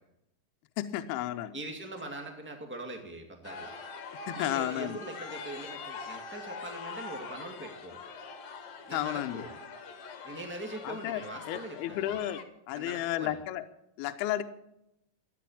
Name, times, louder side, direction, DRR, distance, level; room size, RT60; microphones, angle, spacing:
voice 1, 0.8-1.5 4.3-5.0 8.9-9.4 10.8-12.4 12.7-13.7 14.0-14.4, left 13 dB, 75° left, 8 dB, 2.6 m, -33 dB
voice 2, 1.5-3.7 4.3-8.0 8.9-9.5 10.2-12.1 12.7-13.4, right 1 dB, 10° right, 3 dB, 0.6 m, -42 dB
sound 1, 3.4-12.4, left 4 dB, 55° left, 2.1 m, -43 dB
14.5 x 10.0 x 8.7 m, 0.83 s
omnidirectional pair, 4.8 m